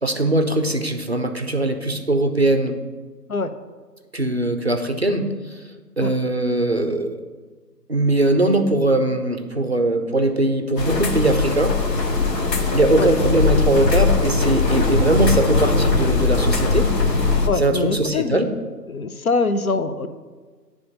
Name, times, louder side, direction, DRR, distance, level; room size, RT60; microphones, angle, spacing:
voice 1, 0.0-2.8 4.1-5.6 6.0-7.2 7.9-11.8 12.7-16.9 17.5-18.5, right 2 dB, 45° right, 6 dB, 0.4 m, -20 dB
sound 1, 10.8-17.5, left 4 dB, 80° left, 1.2 m, -20 dB
voice 2, 17.5-18.4 18.9-20.1, left 3 dB, 60° left, 11 dB, 0.5 m, -23 dB
9.3 x 3.5 x 5.1 m, 1.4 s
figure-of-eight pair, 165°, 49 cm